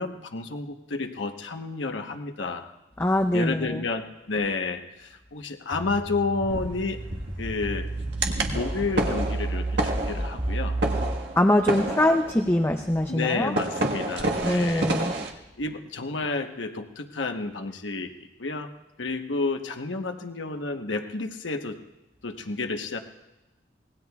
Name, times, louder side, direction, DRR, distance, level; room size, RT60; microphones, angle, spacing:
voice 1, 0.0-2.7 3.3-7.0 7.4-7.9 8.5-10.8 13.1-14.9 15.6-18.1 18.4-18.7 19.0-21.8 22.2-23.0, left 3 dB, 85° left, 5 dB, 1.1 m, -30 dB
voice 2, 3.0-3.8 11.4-13.5 14.4-15.1, left 1 dB, 15° left, 5 dB, 0.5 m, -23 dB
sound 1, 5.7-11.1, right 2 dB, 20° right, 2.3 m, -31 dB
sound 2, 6.5-15.3, right 2 dB, 70° right, 1.6 m, -30 dB
25.0 x 19.5 x 2.4 m, 1.0 s
head